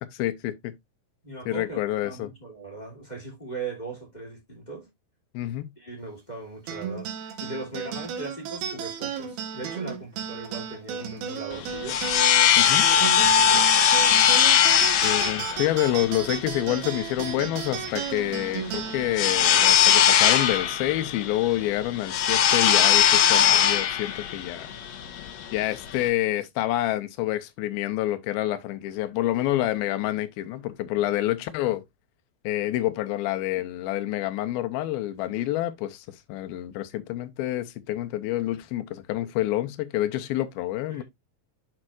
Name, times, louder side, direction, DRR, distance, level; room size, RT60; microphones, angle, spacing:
voice 1, 0.2-0.7 1.5-2.3 5.3-5.7 12.6-12.9 15.0-24.7 25.5-31.8 32.4-41.0, left 14 dB, 85° left, 2.5 m, -28 dB
voice 2, 1.2-4.9 5.8-12.0 12.5-13.7 40.9-41.0, right 3 dB, 15° left, 2.4 m, -39 dB
sound 1, 6.7-21.4, right 7 dB, 80° right, 3.1 m, -35 dB
sound 2, 11.5-26.1, left 9 dB, 70° left, 1.6 m, -21 dB
10.5 x 4.4 x 2.5 m
omnidirectional pair, 4.3 m